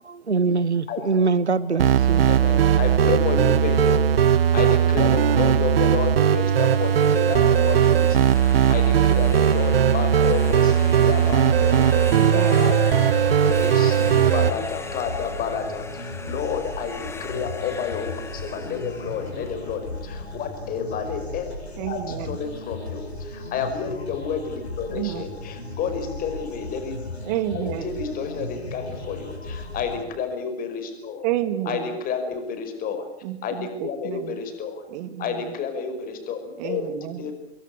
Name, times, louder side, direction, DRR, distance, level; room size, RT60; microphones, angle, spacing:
voice 1, 0.0-2.3, right 4 dB, 85° right, 1.2 m, -23 dB
sound 1, 1.8-14.5, right 8 dB, 60° right, 1.2 m, -18 dB
voice 2, 2.3-12.1 12.3-21.5 21.9-27.0 27.5-31.3 31.7-33.1 33.4-33.5 33.8-34.9 35.2-36.8 37.2-37.3, left 6 dB, 25° left, 5.3 m, -30 dB
sound 2, 6.5-20.3, left 4 dB, 10° left, 1.9 m, -39 dB
sound 3, 10.9-30.0, left 2 dB, 75° left, 7.3 m, -36 dB
voice 3, 12.1-12.7 21.8-22.4 24.9-25.4 27.2-28.0 31.2-31.9 33.2-34.4 34.9-35.5 36.6-37.3, right 13 dB, 40° right, 2.7 m, -30 dB
27.5 x 22.5 x 8.6 m
figure-of-eight pair, 105°, 33 cm